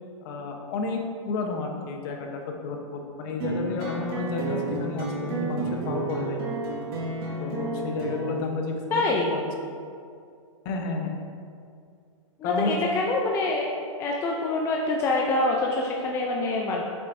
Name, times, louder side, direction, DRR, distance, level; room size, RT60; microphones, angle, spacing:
voice 1, 0.2-1.0 1.3-6.4 7.4-9.1 9.3-9.4 9.7-9.8 10.6-11.2 12.4-12.7, left 3 dB, 40° left, 3 dB, 0.9 m, -31 dB
sound 1, 3.4-8.4, right 3 dB, 45° right, 1.7 m, -31 dB
voice 2, 8.9-9.3 12.4-13.7 14.0-16.8, left 2 dB, 15° left, -1 dB, 0.4 m, -25 dB
7.3 x 7.1 x 2.6 m, 2.3 s
hypercardioid pair, 145°, 17 cm